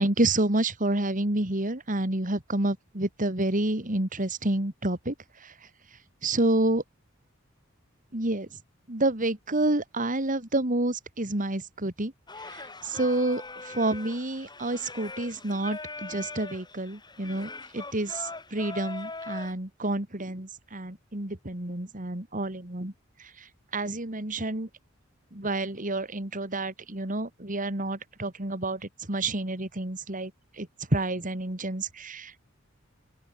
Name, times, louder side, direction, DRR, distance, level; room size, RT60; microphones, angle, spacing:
voice 1, 0.0-5.1 6.2-6.8 8.1-8.5 8.9-12.1 12.8-22.9 23.7-24.7 25.3-28.8 29.1-30.3 30.6-32.4, right 2 dB, 40° right, 3.0 m, -29 dB
Singing, 12.3-19.5, left 3 dB, 20° left, 5.8 m, -41 dB
open air
head